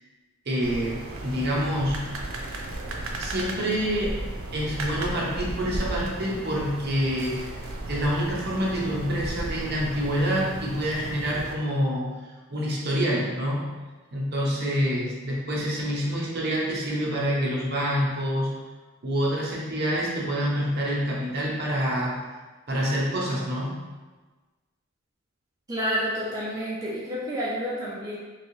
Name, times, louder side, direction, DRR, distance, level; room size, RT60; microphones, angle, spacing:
voice 1, 0.5-2.1 3.2-4.2 4.5-7.5 7.9-12.1 12.5-13.7 14.1-18.5 19.0-22.2 22.7-23.8, equal, 50° right, -4 dB, 0.7 m, -27 dB
sound 1, 0.6-11.5, right 1 dB, 90° right, 0.5 m, -35 dB
voice 2, 25.7-28.2, equal, 15° right, -7 dB, 0.4 m, -29 dB
3.2 x 2.6 x 2.6 m, 1.3 s
head